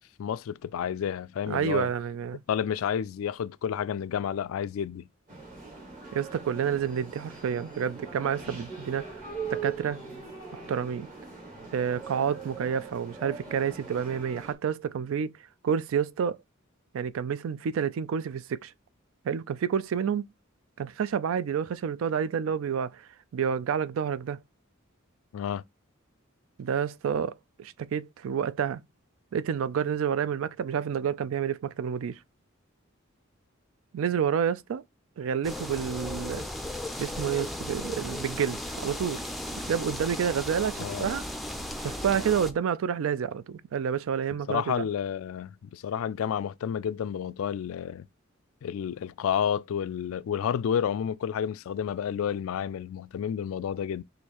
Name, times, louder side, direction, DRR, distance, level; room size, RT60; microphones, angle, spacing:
voice 1, 0.2-1.9 2.5-5.1 25.3-25.6 40.8-41.1 44.5-48.1 48.6-54.0, left 8 dB, 75° left, 0.3 m, -30 dB
voice 2, 1.5-2.4 6.1-9.1 9.5-10.0 10.5-11.1 11.7-15.3 15.6-16.4 16.9-18.7 19.2-20.3 20.8-23.0 23.3-24.4 26.6-28.8 29.3-32.2 33.9-34.8 35.2-36.4 37.0-39.3 39.6-41.3 41.8-44.9, right 7 dB, 70° right, 0.3 m, -29 dB
sound 1, 5.3-14.5, right 5 dB, 40° right, 1.7 m, -41 dB
sound 2, 35.4-42.5, left 1 dB, ahead, 0.4 m, -36 dB
6.3 x 2.6 x 2.9 m
head